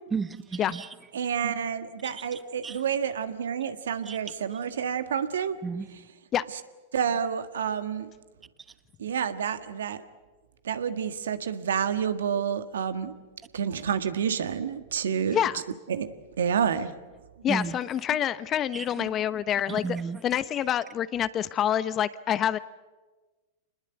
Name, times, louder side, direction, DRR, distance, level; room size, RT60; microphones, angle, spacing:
voice 1, 0.1-0.9 2.0-2.8 4.1-4.2 5.6-5.9 17.5-17.8 18.7-18.9 19.7-20.2, right 5 dB, 15° right, 1.4 m, -33 dB
voice 2, 1.1-5.6 6.9-8.1 9.0-10.0 10.6-13.1 13.5-15.5 15.9-16.1 16.4-16.9 19.0-19.1, right 7 dB, 75° right, 1.6 m, -29 dB
voice 3, 15.3-15.6 17.4-19.8 20.2-22.6, left 10 dB, 30° left, 0.9 m, -27 dB
27.0 x 20.5 x 8.1 m
hypercardioid pair, 100°, 0 cm